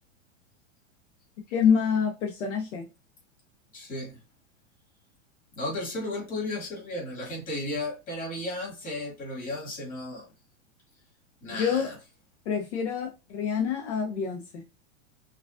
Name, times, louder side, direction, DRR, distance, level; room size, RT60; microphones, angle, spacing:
voice 1, 1.5-2.9 11.5-11.9 12.5-14.6, left 7 dB, 60° left, 0.9 m, -27 dB
voice 2, 3.7-4.2 5.6-10.3 11.4-12.0, left 2 dB, 20° left, 2.0 m, -34 dB
5.9 x 2.4 x 2.5 m
supercardioid pair, 160°, 40 cm